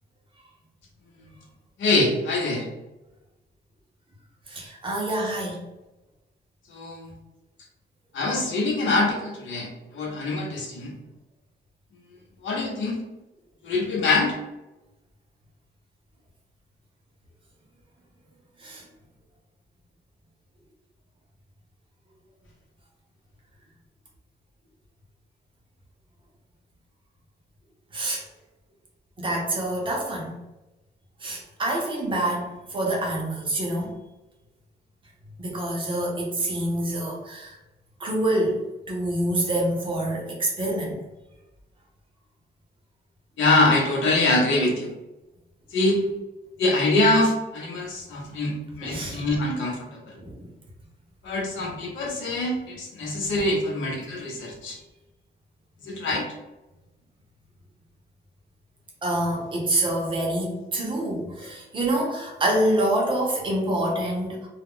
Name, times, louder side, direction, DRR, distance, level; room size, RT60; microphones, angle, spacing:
voice 1, 1.8-2.7 6.7-7.1 8.1-10.9 12.4-13.0 13.6-14.4 43.4-44.9 45.7-46.0 46.6-49.8 50.1-50.2 51.2-54.8 55.8-56.2, left 2 dB, 85° left, 0 dB, 0.7 m, -24 dB
voice 2, 4.5-5.6 18.6-18.8 27.9-28.2 29.2-30.3 31.2-33.9 35.4-37.6 38.0-38.6 38.9-41.0 48.8-49.2 50.2-50.4 51.6-51.8 52.2-52.3 59.0-64.5, right 1 dB, 25° right, -2 dB, 0.6 m, -26 dB
2.2 x 2.0 x 3.6 m, 1.0 s
wide cardioid pair, 180°, 19 cm